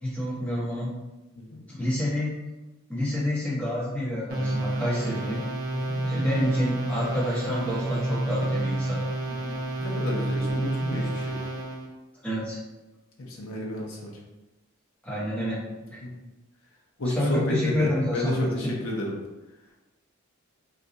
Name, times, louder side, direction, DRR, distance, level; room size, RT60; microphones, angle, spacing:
voice 1, 0.0-0.9 1.7-2.4 2.9-5.5 6.0-9.0 12.2-12.6 15.0-15.6 15.9-16.0 17.0-18.8, left 1 dB, 5° left, -7 dB, 0.8 m, -28 dB
sound 1, 4.3-11.9, right 1 dB, 40° right, 0.5 m, -29 dB
voice 2, 9.3-11.4 13.3-14.1 16.0-16.1 17.0-19.1, left 1 dB, 70° left, -2 dB, 0.7 m, -30 dB
2.5 x 2.3 x 3.8 m, 1.1 s
head